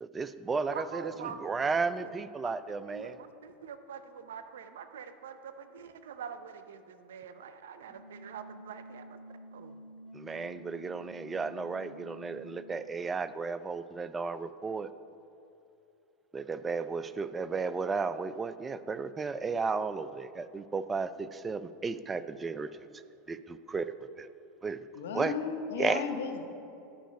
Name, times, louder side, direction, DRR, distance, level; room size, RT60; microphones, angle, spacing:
voice 1, 0.0-3.1 10.1-14.9 16.3-22.9 23.3-24.3 24.6-24.8 25.1-25.3 25.8-26.0, right 4 dB, 20° right, 13 dB, 0.3 m, -34 dB
voice 2, 0.7-9.2 9.5-9.7, right 7 dB, 90° right, 10 dB, 0.5 m, -45 dB
sound 1, 7.9-12.9, right 1 dB, ahead, 2.0 m, -50 dB
voice 3, 24.9-26.4, left 6 dB, 85° left, 6 dB, 0.9 m, -34 dB
11.5 x 5.1 x 5.1 m, 2.7 s
supercardioid pair, 120°, 0 cm